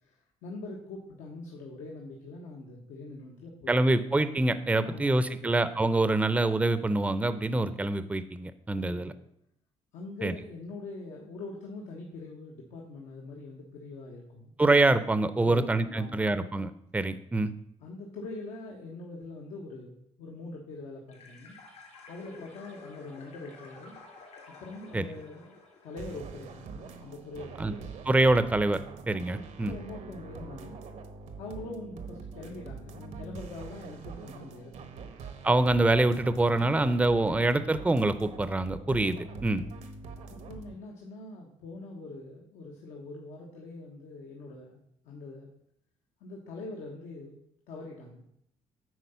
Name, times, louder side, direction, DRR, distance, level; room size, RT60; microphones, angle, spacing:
voice 1, 0.0-4.0 4.8-5.6 8.8-9.1 9.9-14.5 15.4-16.4 17.8-21.6 22.1-24.0 24.6-25.6 25.8-27.9 29.6-30.8 31.4-35.1 36.7-37.4 40.3-44.8 45.0-45.5 46.2-47.4 47.7-48.2, left 2 dB, 85° left, -1 dB, 1.2 m, -43 dB
voice 2, 3.7-9.1 10.2-10.3 14.6-17.5 24.9-25.0 27.6-27.7 28.1-28.8 29.1-29.7 35.4-39.6, right 2 dB, 10° right, 13 dB, 0.5 m, -25 dB
sound 1, 21.1-26.8, left 3 dB, 70° left, 3.2 m, -51 dB
sound 2, 26.0-40.7, right 4 dB, 80° right, 1.1 m, -44 dB
9.3 x 3.9 x 5.6 m, 0.74 s
cardioid pair, 85°, 12 cm